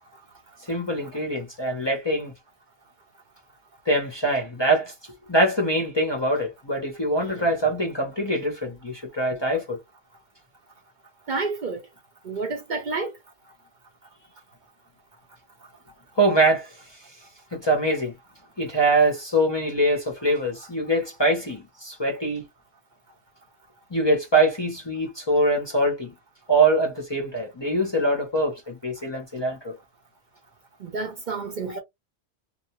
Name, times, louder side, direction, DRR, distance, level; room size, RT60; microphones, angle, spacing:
voice 1, 0.7-2.3 3.9-4.9 5.3-9.8 16.2-16.7 17.5-18.1 18.6-22.4 23.9-26.1 26.5-29.7, right 1 dB, 30° left, 0.6 m, -23 dB
voice 2, 11.3-11.8 12.2-13.1 30.8-31.8, right 3 dB, 50° right, 0.7 m, -30 dB
2.4 x 2.1 x 2.8 m
omnidirectional pair, 1.1 m